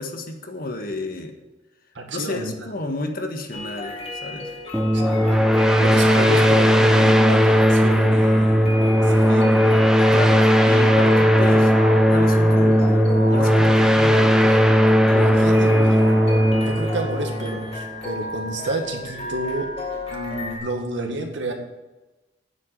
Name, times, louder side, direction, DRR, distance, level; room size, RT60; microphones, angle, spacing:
voice 1, 0.0-1.3 2.1-4.5 10.1-14.6, left 2 dB, 50° left, 4 dB, 1.6 m, -31 dB
voice 2, 2.0-2.5 4.9-5.3 5.7-9.8 15.1-16.0 16.5-19.7 20.1-21.5, right 2 dB, 80° right, 3 dB, 1.9 m, -30 dB
sound 1, 3.5-20.6, left 1 dB, 30° left, 2.1 m, -34 dB
sound 2, 4.7-18.1, equal, 5° right, 0.9 m, -17 dB
9.4 x 7.8 x 9.0 m, 1.1 s
head